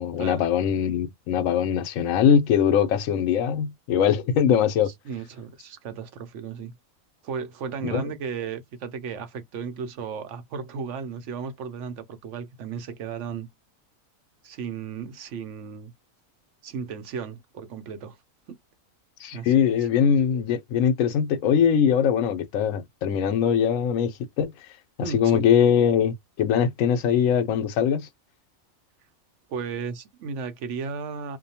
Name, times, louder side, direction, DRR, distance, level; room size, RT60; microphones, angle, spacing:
voice 1, 0.0-4.9 7.8-8.0 19.2-24.5 25.1-28.1, left 8 dB, 75° left, 1.0 m, -22 dB
voice 2, 5.0-6.7 7.2-13.5 14.4-15.9 16.6-18.2 18.5-18.6 19.3-19.9 25.0-25.4 29.5-31.4, right 6 dB, 65° right, 0.9 m, -35 dB
2.5 x 2.2 x 2.7 m
omnidirectional pair, 1.4 m